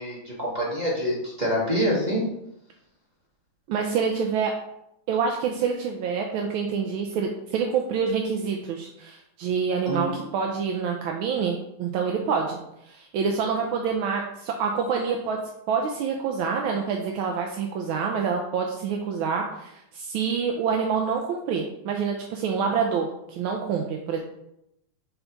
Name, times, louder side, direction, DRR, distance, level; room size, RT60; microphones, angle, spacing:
voice 1, 0.0-2.3 9.9-10.2, equal, 25° right, -5 dB, 1.0 m, -26 dB
voice 2, 3.7-4.5 5.1-12.6 12.8-15.4 15.7-24.2, right 6 dB, 80° right, 1 dB, 1.4 m, -27 dB
5.6 x 4.3 x 3.9 m, 0.82 s
omnidirectional pair, 2.4 m